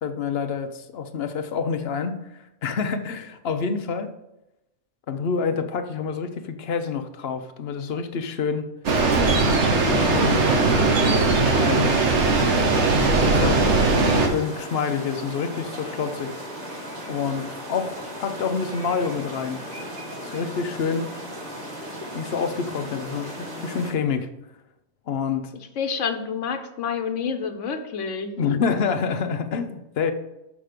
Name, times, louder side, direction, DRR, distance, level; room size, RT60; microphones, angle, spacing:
voice 1, 0.0-2.2 2.6-4.1 5.1-8.7 9.7-10.5 11.0-11.9 13.2-13.7 14.2-16.3 17.1-19.6 20.2-21.1 22.1-24.3 25.1-25.5 28.4-30.1, left 6 dB, 60° left, 8 dB, 0.9 m, -27 dB
sound 1, 8.9-14.3, right 3 dB, 70° right, 1.4 m, -19 dB
sound 2, 9.8-23.9, equal, 35° right, 1.4 m, -36 dB
voice 2, 25.8-28.3, left 6 dB, 85° left, 8 dB, 1.1 m, -28 dB
6.4 x 6.1 x 5.0 m, 0.91 s
omnidirectional pair, 1.2 m